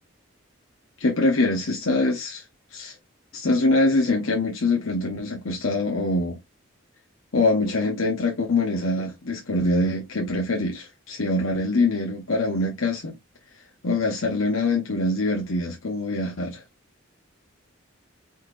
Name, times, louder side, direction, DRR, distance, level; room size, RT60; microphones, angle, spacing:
voice 1, 1.0-2.4 2.7-2.9 3.3-6.4 7.3-13.2 13.8-16.6, left 2 dB, 85° left, 1.1 m, -24 dB
4.7 x 4.3 x 2.4 m
head